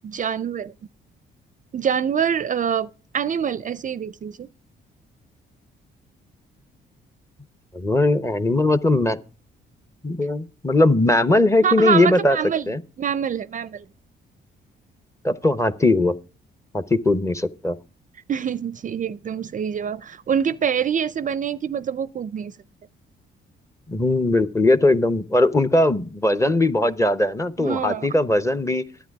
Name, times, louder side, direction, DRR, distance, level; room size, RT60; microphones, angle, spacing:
voice 1, 0.0-0.7 1.7-2.9 3.1-4.5 11.6-12.6 13.0-13.8 18.3-22.5 27.6-28.1, right 8 dB, 40° right, 0.5 m, -25 dB
voice 2, 7.7-9.2 10.0-12.4 12.7-12.8 15.2-16.1 16.7-17.8 23.9-28.8, left 2 dB, 15° left, 0.9 m, -19 dB
11.5 x 9.3 x 4.7 m
cardioid pair, 90°, 20 cm